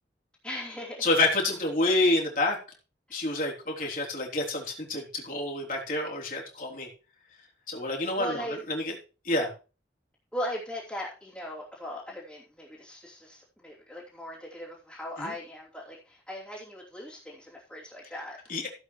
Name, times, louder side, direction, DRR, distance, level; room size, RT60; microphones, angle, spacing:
voice 1, 0.4-1.1 3.1-3.2 8.2-8.6 10.3-18.6, equal, 5° left, -9 dB, 3.0 m, -38 dB
voice 2, 1.0-2.6 3.1-6.9 7.7-8.4 8.7-9.0 9.2-9.5 15.2-15.3 18.5-18.7, left 2 dB, 45° left, -2 dB, 3.6 m, -28 dB
16.0 x 8.1 x 3.2 m, 0.34 s
head